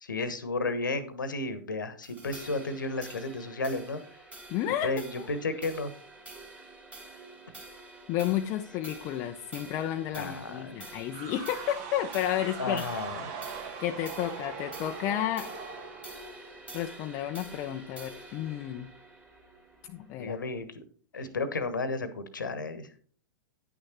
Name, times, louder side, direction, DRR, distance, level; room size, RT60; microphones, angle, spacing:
voice 1, 0.0-4.0 4.8-5.9 10.1-10.8 12.6-13.3 20.2-20.8 21.1-23.0, left 3 dB, 75° left, 12 dB, 1.2 m, -33 dB
sound 1, 2.0-20.6, right 2 dB, 10° right, 2.6 m, -48 dB
voice 2, 4.5-5.3 8.1-12.9 13.8-15.5 16.7-18.9 19.9-20.4, left 12 dB, 35° left, 5 dB, 0.6 m, -32 dB
sound 2, 11.1-16.9, right 6 dB, 40° right, 1.6 m, -41 dB
9.8 x 6.4 x 4.3 m, 0.44 s
figure-of-eight pair, 105°, 10 cm